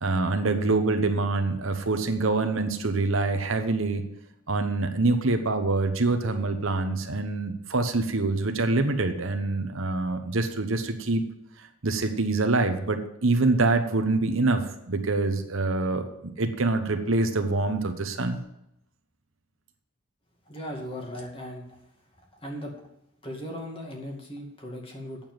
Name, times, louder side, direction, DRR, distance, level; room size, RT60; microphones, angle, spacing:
voice 1, 0.0-4.0 4.5-11.2 11.8-18.4, right 3 dB, 60° right, 7 dB, 1.1 m, -25 dB
voice 2, 20.5-21.8 22.3-22.7 23.2-25.3, equal, 25° left, 0 dB, 2.2 m, -38 dB
9.0 x 7.2 x 7.8 m, 0.81 s
head